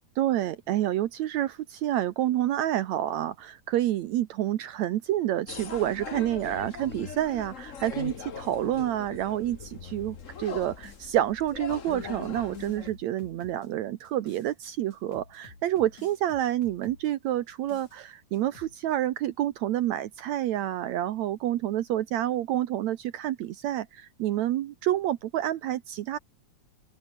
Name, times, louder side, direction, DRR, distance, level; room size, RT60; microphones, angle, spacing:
voice 1, 0.2-26.2, right 13 dB, 70° right, 2.1 m, -28 dB
sound 1, 5.5-12.9, left 6 dB, 45° left, 0.9 m, -40 dB
sound 2, 10.1-11.1 11.5-14.5 14.9-17.1 17.5-18.0 18.3-18.8, left 4 dB, 70° left, 7.7 m, -53 dB
open air
omnidirectional pair, 3.5 m